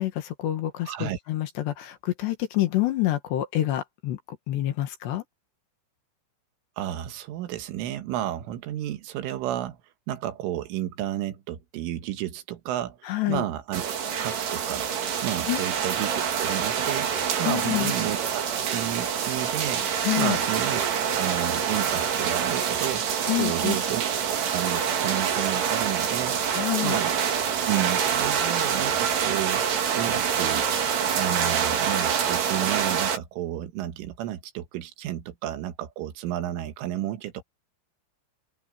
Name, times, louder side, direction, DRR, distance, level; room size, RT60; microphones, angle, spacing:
voice 1, 0.0-4.2 4.5-5.2 13.0-13.4 15.5-15.6 17.4-17.9 20.0-20.4 23.3-23.8 26.5-27.0, left 15 dB, 65° left, 3.5 m, -27 dB
voice 2, 0.9-1.2 6.8-9.8 10.1-13.9 14.2-14.9 15.2-17.1 17.4-23.0 23.4-27.1 27.7-29.6 29.9-30.7 31.2-37.4, right 12 dB, 80° right, 4.0 m, -32 dB
sound 1, 13.7-33.2, right 7 dB, 60° right, 4.8 m, -26 dB
open air
omnidirectional pair, 5.8 m